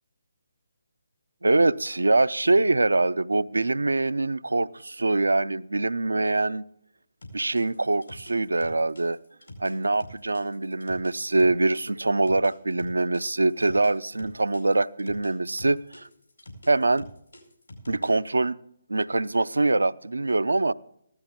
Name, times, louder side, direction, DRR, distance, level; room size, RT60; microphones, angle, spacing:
voice 1, 1.4-6.7 7.3-9.2 9.6-16.1 16.7-17.1 17.9-18.6 18.9-20.7, right 2 dB, 80° right, 0.4 m, -24 dB
sound 1, 7.2-11.8 12.3-15.3 15.6-18.3, left 2 dB, 80° left, 4.3 m, -46 dB
15.5 x 12.5 x 3.7 m
figure-of-eight pair, 145°, 0 cm